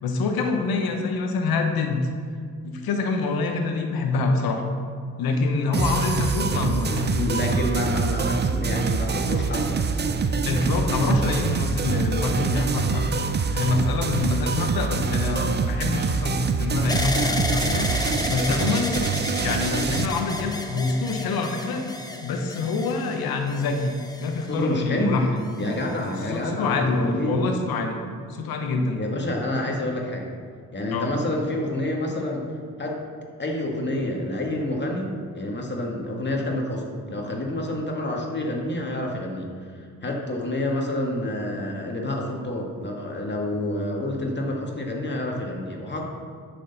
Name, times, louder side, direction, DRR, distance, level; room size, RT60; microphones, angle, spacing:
voice 1, 0.0-2.1 2.6-4.6 5.2-7.4 10.3-13.1 13.5-17.9 18.3-18.9 19.4-21.9 22.2-25.3 26.3-28.0 28.3-29.0 30.9-31.1, left 3 dB, 85° left, 4 dB, 1.1 m, -25 dB
sound 1, 5.7-20.0, right 5 dB, 30° right, 0.6 m, -25 dB
voice 2, 6.9-9.9 10.1-10.2 24.5-25.2 25.6-27.4 29.0-30.3 30.7-32.5 32.8-33.0 33.4-39.5 40.0-46.0, left 1 dB, 30° left, 0 dB, 2.0 m, -28 dB
sound 2, 16.9-24.9 25.6-26.3, left 1 dB, 10° left, 1.0 m, -32 dB
11.0 x 6.6 x 4.2 m, 2.1 s
cardioid pair, 70°, 36 cm